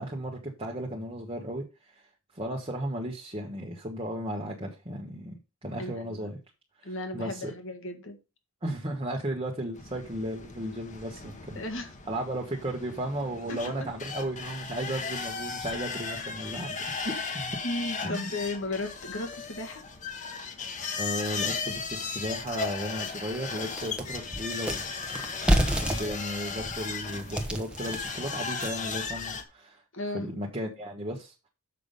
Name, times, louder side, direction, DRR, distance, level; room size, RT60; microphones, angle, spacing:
voice 1, 0.0-2.0 2.3-5.3 5.6-6.4 6.8-7.5 8.6-11.6 12.1-17.6 18.0-18.3 21.0-24.9 26.0-29.8 30.1-31.5, right 1 dB, 25° right, 1.3 m, -35 dB
voice 2, 5.8-6.3 6.8-8.2 11.2-12.0 13.5-13.9 16.4-16.5 17.6-19.8 29.9-30.3, left 2 dB, 60° left, 1.9 m, -35 dB
sound 1, 9.7-29.4, left 5 dB, 35° left, 1.3 m, -36 dB
sound 2, 21.8-21.9 22.4-22.5 22.9-29.0, right 1 dB, 5° right, 1.2 m, -30 dB
6.8 x 6.0 x 5.3 m
head